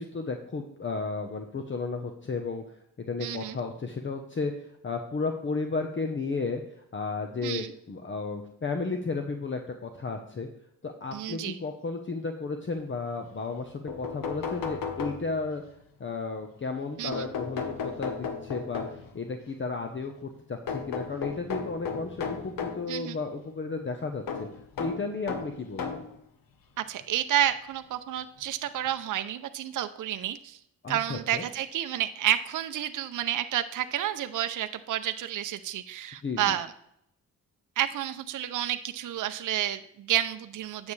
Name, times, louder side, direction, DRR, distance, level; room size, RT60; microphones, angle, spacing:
voice 1, 0.0-6.6 6.9-10.5 10.8-15.6 16.0-24.5 24.8-26.0 30.8-31.4 36.2-36.6, left 4 dB, 35° left, 5 dB, 0.9 m, -33 dB
voice 2, 3.2-3.6 7.4-7.7 11.1-11.6 17.0-17.3 22.9-23.2 26.8-30.6 30.9-36.7 37.8-40.9, right 12 dB, 65° right, 9 dB, 0.5 m, -30 dB
sound 1, 13.6-13.7 13.9-15.6 17.1-19.2 20.7-22.9 24.3-26.1 27.0-27.1 28.4-28.5 28.9-29.0, left 5 dB, 75° left, 1.2 m, -35 dB
9.3 x 7.2 x 3.2 m, 0.74 s
cardioid pair, 75°, 34 cm